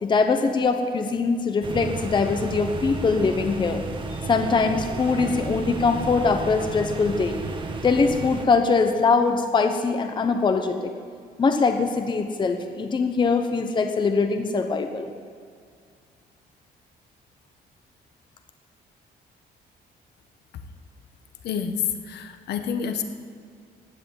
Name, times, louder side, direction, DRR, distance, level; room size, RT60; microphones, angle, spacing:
voice 1, 0.0-3.8 4.3-7.4 7.8-10.9 11.4-15.1, left 4 dB, 30° left, 6 dB, 0.9 m, -22 dB
sound 1, 1.6-8.5, right 2 dB, 30° right, 1.5 m, -32 dB
voice 2, 21.4-23.0, left 7 dB, 80° left, 8 dB, 1.4 m, -28 dB
16.0 x 9.8 x 8.9 m, 2.1 s
cardioid pair, 145°, 17 cm